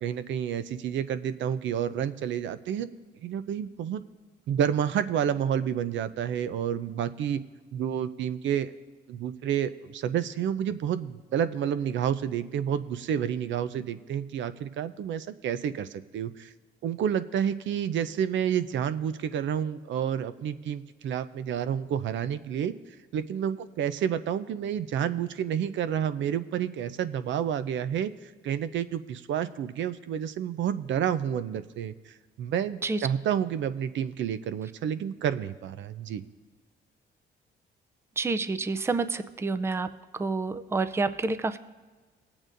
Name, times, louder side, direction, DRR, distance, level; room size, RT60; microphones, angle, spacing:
voice 1, 0.0-2.9 3.2-4.0 4.5-7.4 7.7-8.7 9.1-16.5 16.8-22.7 23.1-31.9 32.4-36.2, right 9 dB, 70° right, 12 dB, 0.5 m, -29 dB
voice 2, 38.2-39.9 40.1-41.6, right 3 dB, 15° right, 12 dB, 0.4 m, -28 dB
19.0 x 8.7 x 2.6 m, 1.4 s
cardioid pair, 90°, 20 cm